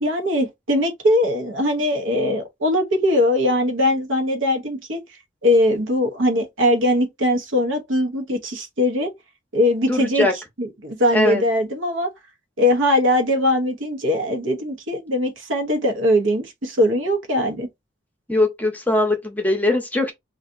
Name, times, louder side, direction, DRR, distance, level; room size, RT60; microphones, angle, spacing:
voice 1, 0.0-5.0 5.4-9.1 9.5-10.3 10.6-12.1 12.6-17.7, left 1 dB, 85° right, 0.9 m, -21 dB
voice 2, 9.9-10.3 11.1-11.4 18.3-20.1, left 2 dB, 10° left, 0.7 m, -20 dB
2.7 x 2.4 x 3.6 m
head